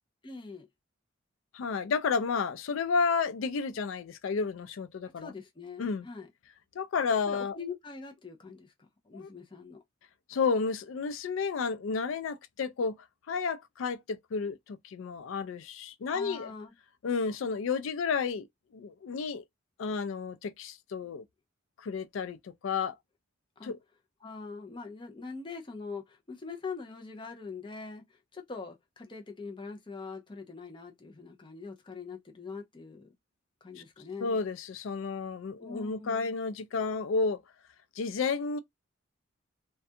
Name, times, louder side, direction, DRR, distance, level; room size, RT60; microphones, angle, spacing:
voice 1, 0.2-0.7 5.2-6.3 7.3-9.8 16.1-16.7 23.6-23.7 24.2-33.1 33.6-34.4 35.6-36.4, left 4 dB, 25° left, 0.5 m, -43 dB
voice 2, 1.5-5.3 5.8-6.1 6.7-7.6 9.1-9.3 10.3-13.0 13.3-16.5 17.0-18.5 18.7-19.4 19.8-21.2 21.8-23.0 23.6-23.8 34.2-37.4 38.0-38.6, left 5 dB, 80° left, 0.4 m, -31 dB
2.4 x 2.2 x 2.6 m
head